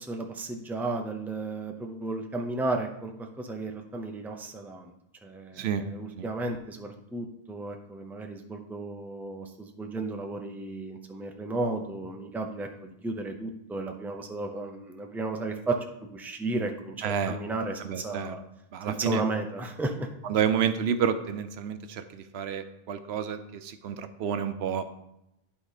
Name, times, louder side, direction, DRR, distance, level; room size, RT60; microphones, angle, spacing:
voice 1, 0.0-4.9 5.2-15.7 16.1-18.4 18.9-20.1, right 2 dB, ahead, 4 dB, 0.5 m, -34 dB
voice 2, 17.0-17.4 17.8-18.4 18.7-19.2 20.2-24.8, right 8 dB, 85° right, 10 dB, 0.9 m, -29 dB
11.0 x 3.9 x 4.1 m, 0.83 s
omnidirectional pair, 1.0 m